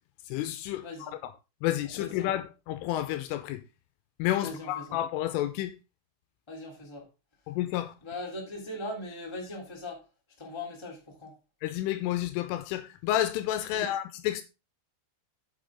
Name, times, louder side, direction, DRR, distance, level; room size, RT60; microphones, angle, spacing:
voice 1, 0.3-1.3 1.6-3.6 4.2-5.7 7.5-7.9 11.6-14.4, left 13 dB, 85° left, 3.2 m, -30 dB
voice 2, 0.8-1.1 2.0-2.3 4.4-5.0 6.5-7.0 8.0-10.0 10.4-11.3 13.7-13.9, left 2 dB, 10° left, 2.0 m, -40 dB
9.1 x 7.5 x 3.7 m
omnidirectional pair, 5.9 m